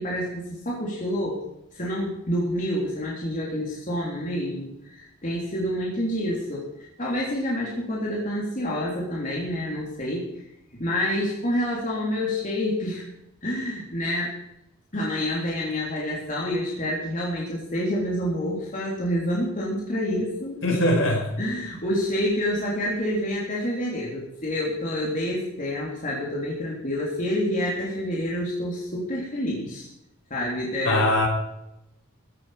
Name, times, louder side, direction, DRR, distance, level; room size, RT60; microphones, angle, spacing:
voice 1, 0.0-1.5 1.7-10.3 10.8-13.1 13.4-14.3 14.9-21.0 21.4-29.9 30.3-31.0, equal, 35° left, -4 dB, 3.6 m, -28 dB
voice 2, 20.6-21.2 30.9-31.3, left 1 dB, 60° left, 1 dB, 5.1 m, -21 dB
15.0 x 12.5 x 5.1 m, 0.83 s
head